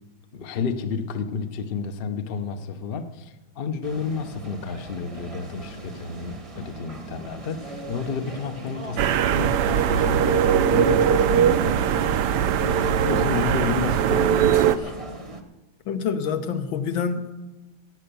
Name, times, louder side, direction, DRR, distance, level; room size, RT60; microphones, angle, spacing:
voice 1, 0.3-9.0 9.3-11.9 12.6-14.9, left 5 dB, 50° left, 8 dB, 0.6 m, -31 dB
sound 1, 3.8-15.4, right 2 dB, 25° right, 0.8 m, -40 dB
sound 2, 9.0-14.8, right 9 dB, 70° right, 1.1 m, -20 dB
voice 2, 15.9-17.3, left 6 dB, 75° left, 8 dB, 1.8 m, -26 dB
16.0 x 9.0 x 6.9 m, 1.1 s
omnidirectional pair, 2.2 m